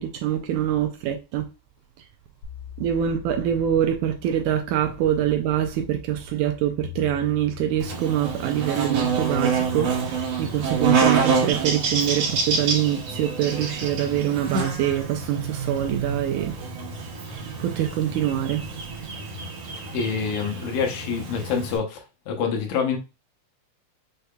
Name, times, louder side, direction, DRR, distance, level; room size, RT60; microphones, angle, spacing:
voice 1, 0.0-1.5 2.8-16.5 17.3-18.7, right 11 dB, 80° right, 1.9 m, -25 dB
sound 1, 2.4-11.2, left 13 dB, 85° left, 2.7 m, -44 dB
Buzz, 7.8-21.8, right 5 dB, 60° right, 2.0 m, -27 dB
voice 2, 19.9-23.0, left 6 dB, 70° left, 2.1 m, -26 dB
6.5 x 2.7 x 2.2 m
omnidirectional pair, 3.8 m